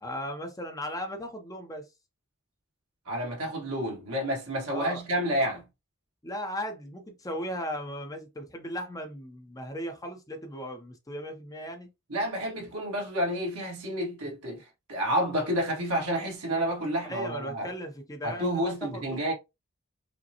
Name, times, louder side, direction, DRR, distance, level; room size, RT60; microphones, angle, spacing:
voice 1, 0.0-1.9 4.7-5.0 6.2-11.9 17.0-19.3, equal, 15° left, 0.7 m, -37 dB
voice 2, 3.1-5.6 12.1-17.7 18.2-19.3, equal, 85° right, 1.8 m, -30 dB
5.0 x 2.2 x 2.9 m
head